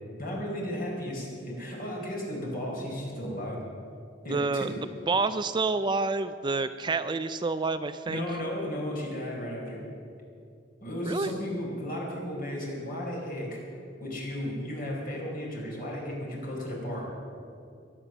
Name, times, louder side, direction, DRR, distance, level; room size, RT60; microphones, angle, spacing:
voice 1, 0.2-3.6 4.2-4.8 8.1-9.8 10.8-13.6 14.0-17.1, equal, 50° left, -2 dB, 4.6 m, -34 dB
voice 2, 4.3-4.7 5.1-8.3 11.0-11.3, right 3 dB, 25° right, 11 dB, 0.4 m, -28 dB
22.5 x 8.8 x 6.9 m, 2.4 s
head